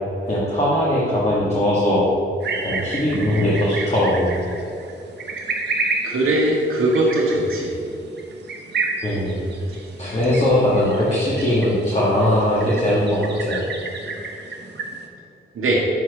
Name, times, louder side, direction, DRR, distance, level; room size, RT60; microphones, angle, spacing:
voice 1, 0.3-2.1 2.6-4.3 9.0-9.4 10.0-13.6, left 1 dB, 30° left, -7 dB, 1.5 m, -20 dB
sound 1, 2.4-15.1, right 3 dB, 55° right, 0.9 m, -31 dB
voice 2, 6.0-7.7 15.5-15.9, right 1 dB, 85° right, -4 dB, 0.9 m, -20 dB
6.7 x 4.4 x 4.7 m, 2.7 s
cardioid pair, 80°, 21 cm